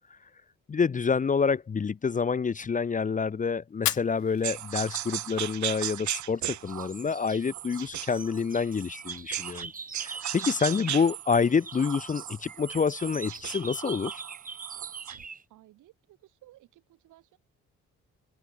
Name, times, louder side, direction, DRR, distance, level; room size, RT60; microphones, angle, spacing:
voice 1, 0.7-9.7 10.0-14.2, left 5 dB, 25° left, 0.6 m, -27 dB
Fire, 3.7-5.7, left 14 dB, 65° left, 0.7 m, -35 dB
sound 1, 4.4-9.7 9.9-15.2, right 13 dB, 70° right, 1.1 m, -37 dB
sound 2, 5.5-6.3 6.7-11.2 11.4-15.4, right 4 dB, 30° right, 2.4 m, -43 dB
voice 2, 15.5-17.4, right 15 dB, 85° right, 6.4 m, -57 dB
cardioid pair, 90°, 30 cm